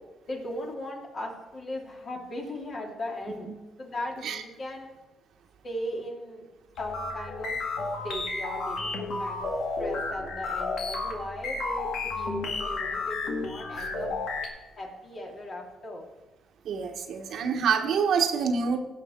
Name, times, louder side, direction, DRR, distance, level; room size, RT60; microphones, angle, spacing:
voice 1, 0.3-3.5 3.8-4.9 5.6-6.5 6.8-9.5 9.8-14.1 14.8-16.0, left 1 dB, 45° left, 0 dB, 2.8 m, -38 dB
sound 1, 6.8-14.5, left 3 dB, 75° left, 2.0 m, -32 dB
voice 2, 16.6-18.8, right 6 dB, 70° right, 5 dB, 1.2 m, -26 dB
17.0 x 6.0 x 4.4 m, 1.1 s
cardioid pair, 90°, 0 cm